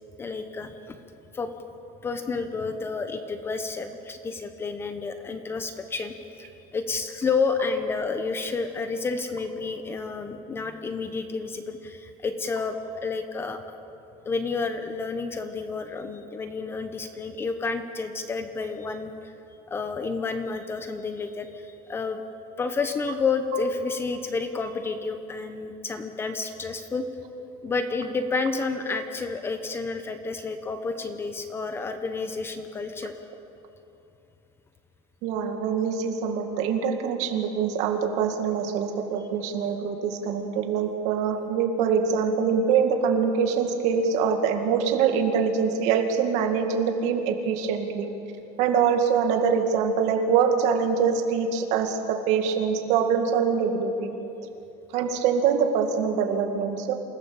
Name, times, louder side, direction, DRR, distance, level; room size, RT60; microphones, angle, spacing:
voice 1, 0.2-1.0 1.3-1.5 2.0-12.8 13.0-13.6 14.3-19.3 19.7-22.2 22.6-27.0 27.6-33.1, left 4 dB, 15° left, 8 dB, 0.8 m, -30 dB
voice 2, 35.2-48.1 48.6-54.1 54.9-56.9, right 6 dB, 50° right, 4 dB, 2.3 m, -24 dB
27.5 x 16.5 x 7.1 m, 2.8 s
cardioid pair, 175°, 15 cm